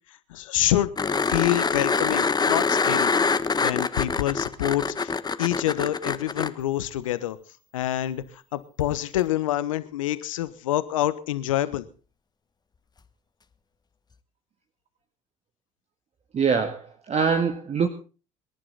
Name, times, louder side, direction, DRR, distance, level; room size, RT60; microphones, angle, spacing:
voice 1, 0.3-0.9 1.3-3.1 3.6-5.1 5.4-7.4 7.7-11.9, left 13 dB, 85° left, 14 dB, 1.1 m, -26 dB
sound 1, 1.0-6.5 9.2-9.3, left 4 dB, 25° left, 1.3 m, -24 dB
voice 2, 16.3-17.9, right 6 dB, 40° right, 6 dB, 1.9 m, -24 dB
25.5 x 11.0 x 4.1 m, 0.37 s
hypercardioid pair, 60°, 17 cm